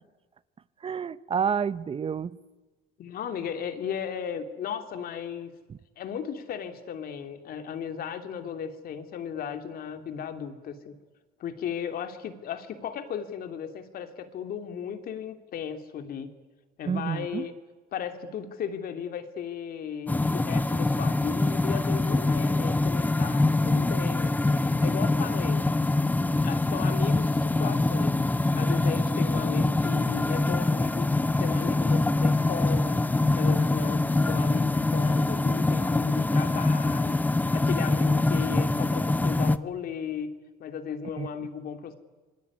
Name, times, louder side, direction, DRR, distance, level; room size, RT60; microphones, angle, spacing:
voice 1, 0.8-2.4 5.7-5.8 16.9-17.5 41.2-41.3, right 7 dB, 35° right, 0.8 m, -29 dB
voice 2, 3.0-5.6 6.0-10.9 11.4-16.3 16.8-17.5 17.9-25.7 26.4-28.2 28.5-31.1 31.4-33.0 33.3-37.2 37.5-40.3 40.6-42.0, left 8 dB, 60° left, 3.0 m, -35 dB
sound 1, 20.1-39.6, left 2 dB, 10° left, 0.9 m, -24 dB
27.0 x 23.0 x 9.8 m
cardioid pair, 110°, 17 cm